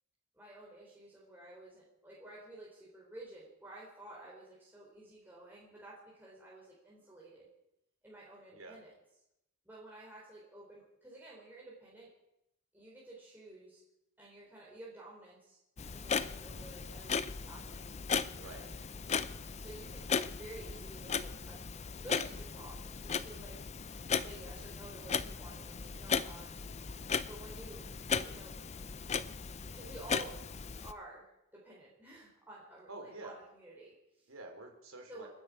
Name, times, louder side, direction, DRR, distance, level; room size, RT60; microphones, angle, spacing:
voice 1, 0.3-7.5 8.0-8.9 9.7-12.1 12.7-13.8 14.2-15.6 15.9-17.9 18.3-18.7 19.6-21.6 22.0-23.6 24.1-26.5 27.3-27.8 28.2-28.6 29.7-30.4 30.8-31.2 31.5-34.3 35.1-35.3, right 2 dB, 10° right, -6 dB, 3.7 m, -52 dB
Clock, 15.8-30.9, left 6 dB, 35° left, 0.5 m, -37 dB
voice 2, 18.3-18.7 27.0-27.3 32.9-33.4 34.3-35.3, right 2 dB, 90° right, 3 dB, 3.5 m, -49 dB
29.0 x 9.8 x 4.8 m, 0.86 s
head